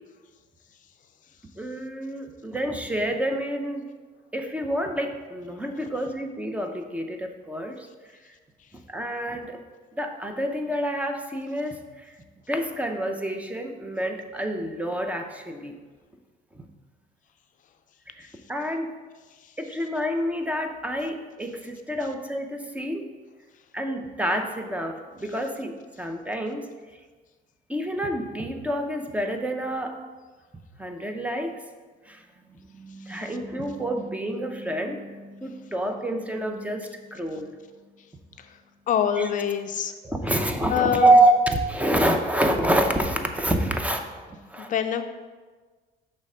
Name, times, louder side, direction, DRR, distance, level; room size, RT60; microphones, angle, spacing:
voice 1, 1.6-3.8 4.3-7.9 8.9-9.6 10.0-11.8 12.5-15.7 18.2-18.9 19.6-23.1 23.7-26.6 27.7-30.0 30.8-31.5 32.1-32.2 32.6-37.6 39.2-39.3 40.0-41.4 41.7-44.1 44.5-44.7, right 1 dB, 10° right, 4 dB, 0.6 m, -27 dB
voice 2, 38.9-39.9 40.7-41.1 44.6-45.0, left 8 dB, 50° left, 8 dB, 0.4 m, -25 dB
6.1 x 3.3 x 5.4 m, 1.4 s
cardioid pair, 110°, 17 cm